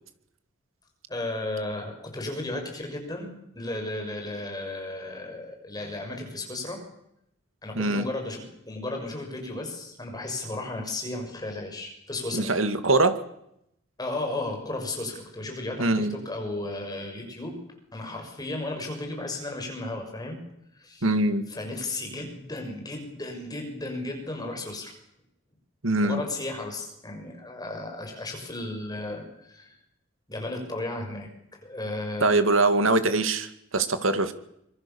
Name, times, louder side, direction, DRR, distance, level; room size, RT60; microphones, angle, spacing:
voice 1, 1.1-6.8 7.6-12.5 14.0-17.6 17.9-20.4 20.7-21.1 21.5-24.9 26.0-29.7 30.3-32.4, left 2 dB, 20° left, 3 dB, 6.5 m, -34 dB
voice 2, 12.3-13.2 15.8-16.2 21.0-21.4 25.8-26.2 32.2-34.3, right 2 dB, 90° right, 10 dB, 2.1 m, -23 dB
25.0 x 23.5 x 7.1 m, 0.79 s
head